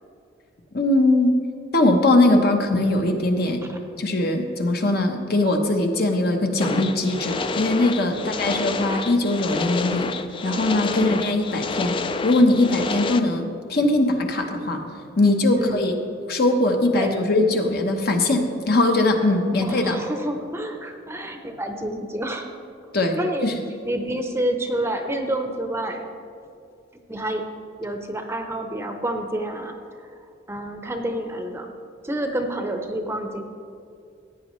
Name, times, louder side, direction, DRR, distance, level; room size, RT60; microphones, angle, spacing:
voice 1, 0.7-1.3 1.7-3.6 4.0-10.1 10.4-11.9 12.2-13.4 13.7-14.8 15.2-16.0 16.3-20.0 22.9-23.2 23.4-23.6, left 2 dB, 55° left, 4 dB, 1.0 m, -20 dB
sound 1, 6.6-13.2, left 4 dB, 25° left, 0.3 m, -29 dB
voice 2, 19.6-22.5 23.2-23.5 23.8-26.1 27.1-27.4 27.8-29.7 30.5-31.7 32.0-33.4, right 1 dB, 15° right, 4 dB, 0.7 m, -28 dB
15.5 x 9.1 x 3.1 m, 2.4 s
head